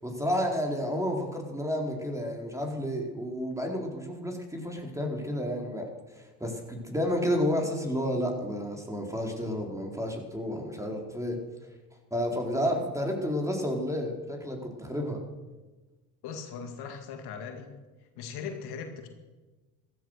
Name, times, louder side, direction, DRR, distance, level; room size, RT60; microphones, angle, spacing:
voice 1, 0.0-11.4 12.1-15.2, equal, 5° right, 1 dB, 4.3 m, -31 dB
voice 2, 16.2-17.7 18.2-19.1, left 6 dB, 70° left, 5 dB, 2.3 m, -39 dB
15.0 x 14.5 x 6.6 m, 1.2 s
hypercardioid pair, 65°, 40 cm